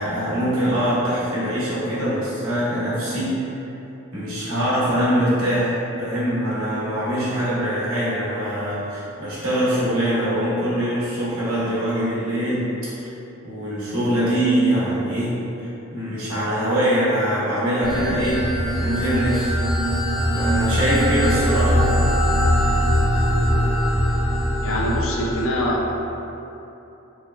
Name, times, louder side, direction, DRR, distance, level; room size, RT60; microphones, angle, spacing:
voice 1, 0.0-3.5 4.1-13.1 13.4-19.5 20.3-21.9, equal, 90° right, -10 dB, 1.0 m, -23 dB
sound 1, 17.8-25.4, equal, 10° left, 0.9 m, -21 dB
voice 2, 24.6-25.8, equal, 70° left, -3 dB, 0.5 m, -24 dB
3.2 x 2.3 x 3.3 m, 2.9 s
head